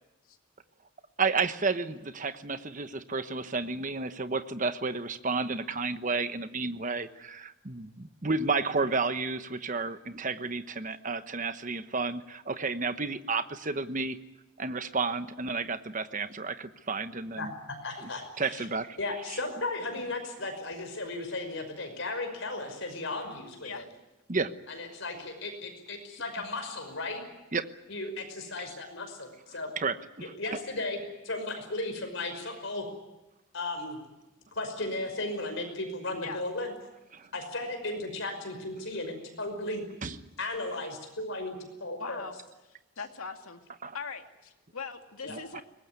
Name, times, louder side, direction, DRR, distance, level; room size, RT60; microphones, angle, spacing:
voice 1, 1.2-14.2 14.6-17.5 18.4-19.0 19.3-19.4 24.3-24.5 27.5-27.7 29.8-30.3 37.1-37.3 40.0-40.2 43.8-43.9 45.3-45.6, right 4 dB, 35° right, 11 dB, 1.1 m, -31 dB
voice 2, 17.4-18.7 19.0-23.8 24.7-27.3 27.9-29.7 30.2-31.0 31.2-32.8 33.5-34.0 34.5-36.7 37.3-39.8 40.4-42.3 45.2-45.4, left 2 dB, 60° left, 6 dB, 5.6 m, -35 dB
voice 3, 42.0-42.3 43.0-43.6 43.9-45.6, left 5 dB, 85° left, 5 dB, 2.4 m, -40 dB
23.5 x 20.0 x 9.6 m, 0.99 s
head